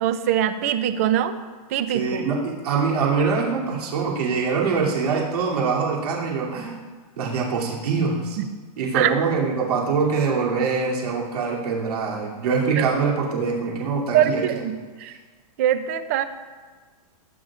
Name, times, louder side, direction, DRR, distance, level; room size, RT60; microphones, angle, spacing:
voice 1, 0.0-1.4 1.7-2.3 8.4-8.5 8.9-9.1 12.8-12.9 14.1-15.2 15.6-16.2, right 10 dB, 25° right, 11 dB, 0.4 m, -23 dB
voice 2, 1.9-6.8 7.2-8.4 8.8-14.6, right 5 dB, 80° right, -4 dB, 2.8 m, -24 dB
18.0 x 9.4 x 2.4 m, 1.4 s
supercardioid pair, 175°, 20 cm